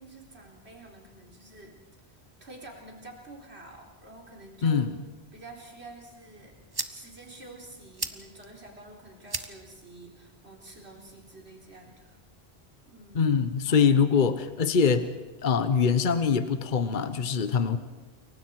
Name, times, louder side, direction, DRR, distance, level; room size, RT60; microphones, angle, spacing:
voice 1, 0.0-1.8 2.4-4.9 5.3-6.6 6.9-12.2 12.9-13.3 13.7-13.9 17.5-17.8, right 2 dB, 85° right, 0 dB, 4.4 m, -48 dB
voice 2, 4.6-4.9 13.1-15.1 15.4-17.8, left 6 dB, 50° left, 11 dB, 1.1 m, -23 dB
sound 1, 6.1-12.1, right 3 dB, 25° right, 1.0 m, -42 dB
29.0 x 23.5 x 4.7 m, 1.2 s
omnidirectional pair, 1.1 m